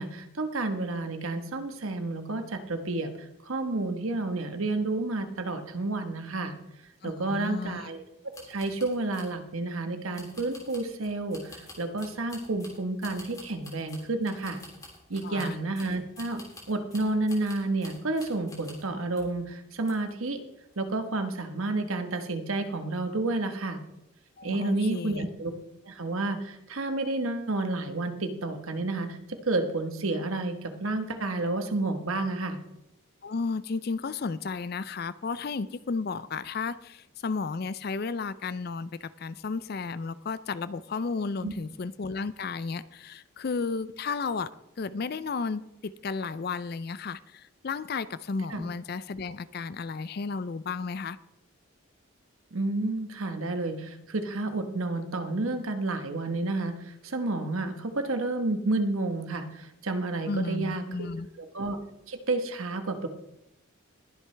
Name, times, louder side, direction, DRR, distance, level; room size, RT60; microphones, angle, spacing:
voice 1, 0.0-3.1 3.5-6.5 7.0-8.0 8.5-14.6 15.1-16.4 16.7-20.4 20.8-23.8 24.4-25.5 25.9-32.6 41.4-41.5 48.5-48.7 52.5-56.8 57.0-61.1 61.4-61.8 62.1-63.1, right 2 dB, 75° right, 7 dB, 1.3 m, -30 dB
voice 2, 7.0-7.9 15.2-15.6 24.4-25.3 33.2-44.5 44.8-51.2 60.3-61.3, left 4 dB, 45° left, 15 dB, 0.4 m, -33 dB
sound 1, 8.3-9.4 10.1-18.9 19.2-19.4 19.8-20.3 20.6-20.8, left 2 dB, 15° left, 3.1 m, -49 dB
20.5 x 7.8 x 3.3 m, 0.86 s
head